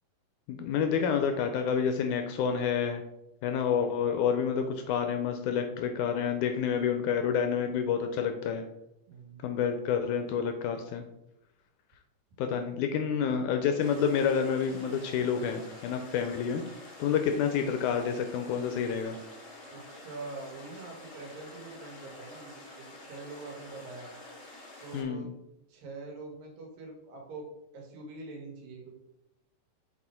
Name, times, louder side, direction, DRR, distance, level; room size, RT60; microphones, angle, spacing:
voice 1, 0.5-3.0 3.4-8.6 9.4-11.0 12.4-16.6 17.0-19.2 24.9-25.3, left 7 dB, 80° left, 6 dB, 1.8 m, -29 dB
voice 2, 9.1-9.5 12.5-12.9 17.1-17.3 19.7-22.4 22.7-24.1 24.8-25.3 25.7-27.5 27.7-28.9, right 3 dB, 80° right, 1 dB, 3.1 m, -44 dB
sound 1, 13.8-25.0, left 2 dB, 30° left, 1.5 m, -49 dB
6.8 x 4.3 x 4.2 m, 0.85 s
omnidirectional pair, 3.9 m